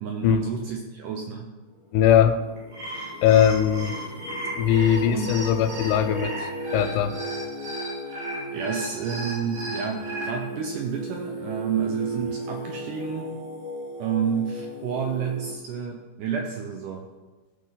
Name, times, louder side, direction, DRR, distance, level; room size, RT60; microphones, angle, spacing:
voice 1, 0.0-1.5 5.1-5.3 8.5-13.4 14.0-17.1, right 7 dB, 85° right, 3 dB, 1.8 m, -30 dB
Singing, 1.7-15.5, right 1 dB, 30° left, 1.5 m, -36 dB
voice 2, 1.9-2.4 3.2-4.0 4.6-6.4 6.7-7.2, left 9 dB, 85° left, 9 dB, 2.5 m, -20 dB
sound 1, 2.6-10.3, right 1 dB, 65° right, 4.6 m, -36 dB
16.0 x 6.1 x 4.0 m, 1.2 s
omnidirectional pair, 4.6 m